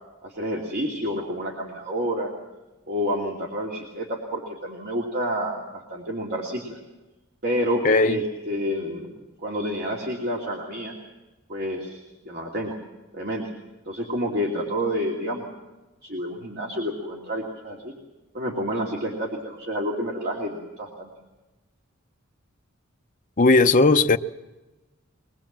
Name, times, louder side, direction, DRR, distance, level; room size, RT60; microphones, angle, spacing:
voice 1, 0.2-2.3 2.9-6.8 7.4-9.2 9.4-10.9 11.5-12.0 12.3-12.8 13.1-13.5 13.9-15.4 16.0-17.9 18.3-21.1, equal, 50° right, 2.9 m, -29 dB
voice 2, 7.8-8.2 23.4-24.2, left 3 dB, 40° left, 0.7 m, -17 dB
23.0 x 21.0 x 7.5 m
head